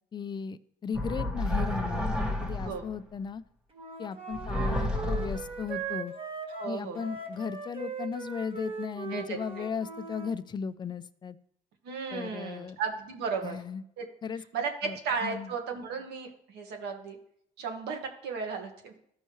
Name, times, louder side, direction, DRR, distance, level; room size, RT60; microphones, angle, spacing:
voice 1, 0.1-3.4 4.0-6.1 6.6-11.4 12.1-12.8 13.4-13.8 14.2-14.4 14.8-15.0 15.2-15.5, left 6 dB, 25° left, 13 dB, 0.4 m, -36 dB
sound 1, 0.9-2.9 4.3-5.7, left 1 dB, 5° right, 1.0 m, -31 dB
Wind instrument woodwind instrument, 3.7-10.3, right 5 dB, 35° right, 1.4 m, -39 dB
voice 2, 6.5-7.0 9.1-9.7 11.8-13.6 14.0-14.1 14.5-17.2 17.6-18.9, right 5 dB, 80° right, 4 dB, 1.6 m, -35 dB
14.0 x 5.5 x 3.1 m, 0.70 s
cardioid pair, 110°, 17 cm